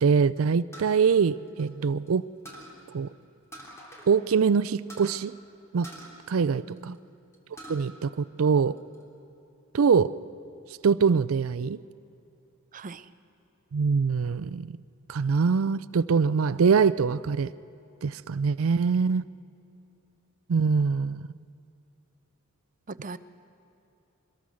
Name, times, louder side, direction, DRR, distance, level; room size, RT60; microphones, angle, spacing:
voice 1, 0.0-2.3 2.9-3.1 4.1-5.3 5.7-5.9 6.3-6.9 7.7-8.8 9.7-10.1 10.8-11.8 13.7-14.8 15.1-17.5 18.0-19.2 20.5-21.3, right 5 dB, 80° right, 15 dB, 0.5 m, -23 dB
sound 1, 0.7-2.1 2.5-2.8 3.5-4.1 4.4-4.5 4.9-5.2 5.8-7.0 7.3-7.8 8.3-9.0, right 1 dB, 15° left, 3.3 m, -46 dB
voice 2, 12.7-13.1 22.9-23.2, right 3 dB, 40° right, 14 dB, 0.6 m, -39 dB
24.0 x 21.5 x 6.3 m, 2.8 s
head